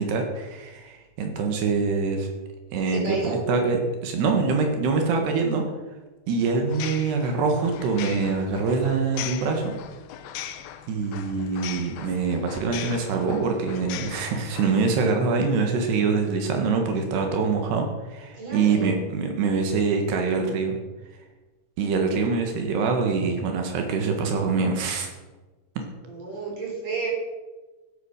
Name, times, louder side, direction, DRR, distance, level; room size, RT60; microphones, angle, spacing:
voice 1, 0.0-2.3 2.7-5.6 6.3-9.8 10.5-10.6 10.9-20.8 21.8-25.1, right 4 dB, 80° right, 3 dB, 3.7 m, -24 dB
voice 2, 2.9-3.4 18.3-18.9 26.0-27.1, right 3 dB, 40° right, -4 dB, 5.6 m, -31 dB
sound 1, 6.7-14.8, left 10 dB, 75° left, 2.5 m, -39 dB
13.5 x 11.0 x 6.6 m, 1.2 s
omnidirectional pair, 4.8 m